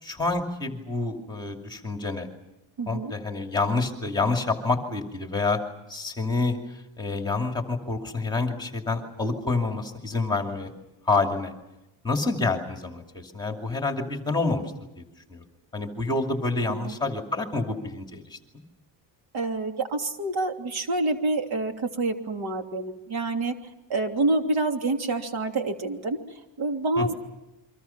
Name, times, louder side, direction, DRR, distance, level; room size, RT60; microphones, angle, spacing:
voice 1, 0.0-2.3 2.9-5.6 5.9-6.6 7.0-10.7 11.1-11.5 12.0-14.6 15.0-15.1 15.3-15.4 15.7-18.4 27.0-27.1, left 3 dB, 10° left, 3 dB, 2.7 m, -27 dB
voice 2, 2.8-3.1 16.7-16.9 19.3-23.5 23.9-26.2 26.6-27.1, right 2 dB, 55° right, 4 dB, 3.1 m, -27 dB
30.0 x 25.0 x 5.9 m, 0.94 s
cardioid pair, 180°, 46 cm